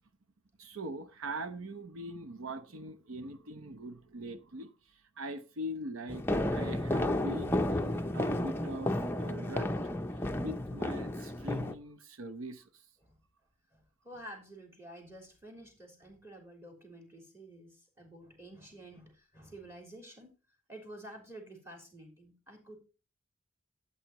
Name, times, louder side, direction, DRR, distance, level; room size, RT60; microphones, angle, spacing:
voice 1, 0.6-4.7 5.2-6.2 6.5-9.7 10.4-12.6, right 1 dB, 90° right, 0.8 m, -42 dB
sound 1, 6.1-11.7, left 1 dB, 10° left, 0.6 m, -32 dB
voice 2, 14.0-20.3 20.7-22.8, right 1 dB, 10° right, 3.4 m, -50 dB
12.5 x 8.6 x 3.0 m
head